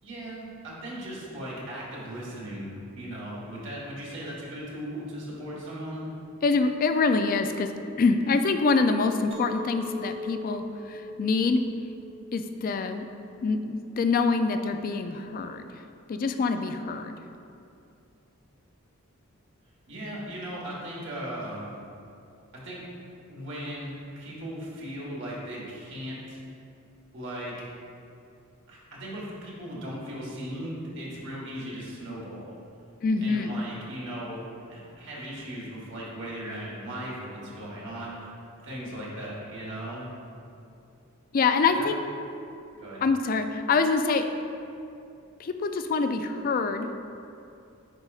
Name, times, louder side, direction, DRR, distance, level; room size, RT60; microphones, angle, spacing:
voice 1, 0.0-2.7 3.0-6.1 19.9-21.7 22.5-22.8 23.3-23.9 24.2-26.4 27.1-27.6 28.7-32.5 33.2-34.4 34.7-38.3 38.6-40.1 41.8-41.9 42.8-43.0, right 1 dB, 60° right, -5 dB, 1.4 m, -37 dB
voice 2, 6.4-7.7 8.0-11.6 12.3-13.1 13.4-15.8 16.1-17.2 33.0-33.6 41.3-42.0 43.0-44.2 45.4-46.9, left 4 dB, 40° left, 8 dB, 0.3 m, -25 dB
Chink clink, 9.3-14.5, left 1 dB, 25° right, 0.6 m, -41 dB
8.1 x 5.1 x 2.4 m, 2.6 s
head